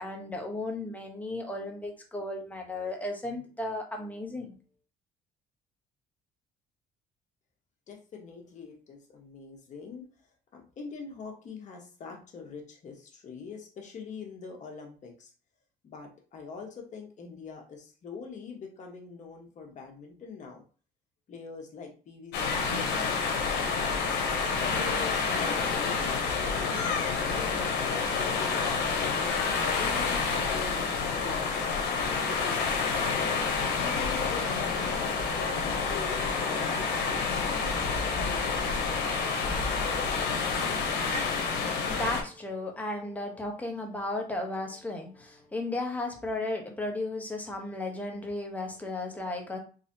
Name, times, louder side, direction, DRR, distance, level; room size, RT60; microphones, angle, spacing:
voice 1, 0.0-4.5 41.9-49.6, left 2 dB, 10° left, 1 dB, 0.9 m, -35 dB
voice 2, 7.9-10.1 10.5-15.3 15.8-20.6 21.3-24.0 24.6-26.2 27.2-33.1 33.8-38.9, left 5 dB, 45° left, 0 dB, 1.2 m, -43 dB
sound 1, 22.3-42.2, left 5 dB, 90° left, 0.8 m, -28 dB
3.9 x 2.7 x 2.7 m, 0.38 s
cardioid pair, 110°, 17 cm